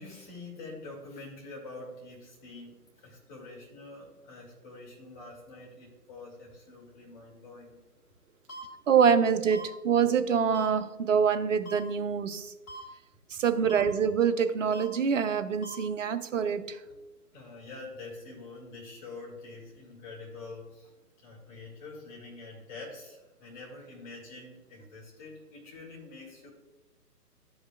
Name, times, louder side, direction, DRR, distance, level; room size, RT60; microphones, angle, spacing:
voice 1, 0.0-7.8 16.9-17.0 17.3-20.9 21.2-26.5, left 3 dB, 30° left, -3 dB, 2.2 m, -46 dB
sound 1, 8.5-8.6 9.5-9.6 10.5-10.7 11.7-11.8 12.7-12.8 13.7-13.8 14.7-14.8 15.6-15.8, right 2 dB, 60° left, 1.3 m, -42 dB
voice 2, 8.9-12.5 13.3-16.8, right 7 dB, 55° right, 10 dB, 0.5 m, -25 dB
12.0 x 5.3 x 2.3 m, 1.0 s
figure-of-eight pair, 135°, 48 cm